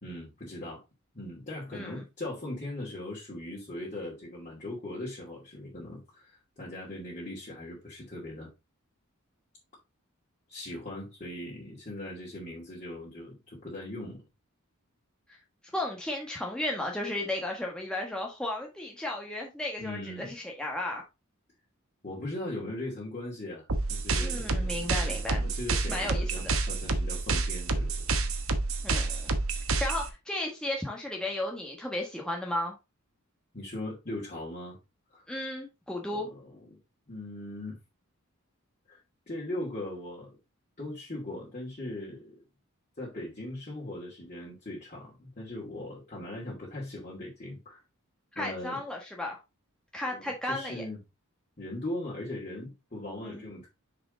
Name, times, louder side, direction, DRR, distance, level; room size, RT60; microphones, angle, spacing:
voice 1, 0.0-0.8 1.1-8.5 10.5-14.2 19.8-20.4 22.0-28.0 33.5-34.8 35.1-35.2 36.1-36.8 37.1-37.8 38.9-39.0 39.3-40.4 40.8-42.4 43.0-47.8 48.4-48.8 50.1-51.0 51.6-53.7, left 1 dB, 35° left, 2.6 m, -39 dB
voice 2, 1.7-2.0 15.7-21.0 24.2-25.4 25.9-26.5 28.8-29.3 29.8-32.7 35.3-36.3 48.3-49.4 49.9-50.8 53.2-53.5, left 1 dB, 5° left, 1.3 m, -34 dB
sound 1, 23.7-30.1, right 3 dB, 70° right, 1.2 m, -29 dB
6.4 x 4.9 x 3.8 m
head